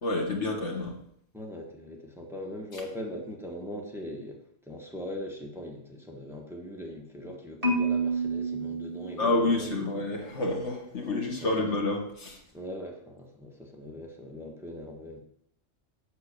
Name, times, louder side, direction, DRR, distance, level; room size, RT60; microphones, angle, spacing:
voice 1, 0.0-1.0 9.2-12.4, left 2 dB, 70° left, 1 dB, 2.0 m, -28 dB
voice 2, 1.3-4.4 4.7-9.7 11.4-11.5 12.5-15.2, equal, ahead, 1 dB, 1.4 m, -40 dB
Marimba xylophone, 7.6-9.8, right 3 dB, 30° right, 1.7 m, -30 dB
7.6 x 6.9 x 6.9 m, 0.71 s
omnidirectional pair, 1.2 m